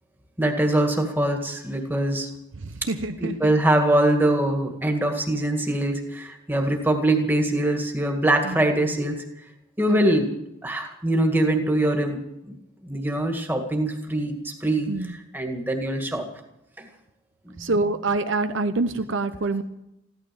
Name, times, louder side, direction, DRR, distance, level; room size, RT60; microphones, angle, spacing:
voice 1, 0.4-2.3 3.2-9.2 9.8-10.3 10.6-12.6 12.8-14.9 15.3-16.2 16.8-16.9 17.5-17.7, right 1 dB, 10° right, 3 dB, 2.0 m, -23 dB
voice 2, 2.6-3.5 8.4-8.7 9.9-10.3 14.9-15.2 17.6-19.6, right 3 dB, 70° right, 9 dB, 0.8 m, -26 dB
16.0 x 12.5 x 7.0 m, 0.86 s
head